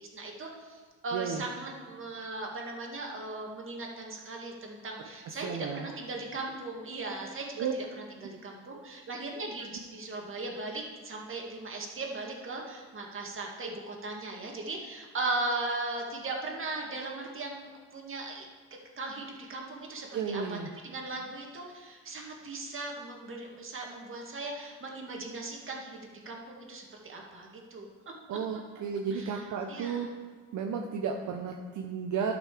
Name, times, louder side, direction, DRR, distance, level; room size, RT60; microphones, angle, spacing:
voice 1, 0.0-18.5 19.0-20.6 20.8-27.9 29.1-29.4 29.7-30.1, right 2 dB, 45° right, 0 dB, 2.1 m, -38 dB
voice 2, 1.1-1.4 5.4-5.9 7.6-7.7 20.1-20.7 28.3-30.1 30.5-32.3, right 6 dB, 70° right, 2 dB, 0.8 m, -33 dB
12.0 x 6.2 x 5.0 m, 1.6 s
cardioid pair, 90°, 30 cm